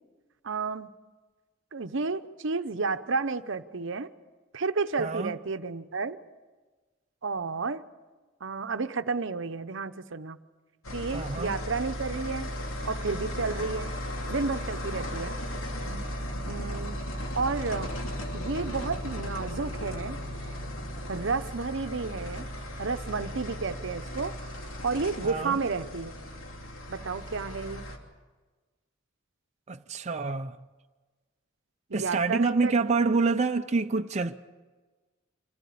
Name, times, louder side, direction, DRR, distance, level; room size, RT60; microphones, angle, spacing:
voice 1, 0.4-0.9 1.7-4.1 4.5-6.2 7.2-7.8 8.4-10.4 10.9-12.5 12.8-13.9 14.3-15.4 16.5-17.0 17.3-17.9 18.3-20.2 21.1-22.5 22.8-24.5 24.8-26.1 26.9-27.9 31.9-32.7, right 4 dB, 65° right, 0.8 m, -31 dB
voice 2, 5.0-5.3 11.1-11.5 15.8-16.1 16.3-16.5 25.2-25.6 29.7-30.6 31.9-34.4, right 4 dB, 35° right, 0.6 m, -27 dB
sound 1, 10.8-28.0, equal, 85° left, 3.0 m, -36 dB
26.0 x 16.0 x 8.5 m
head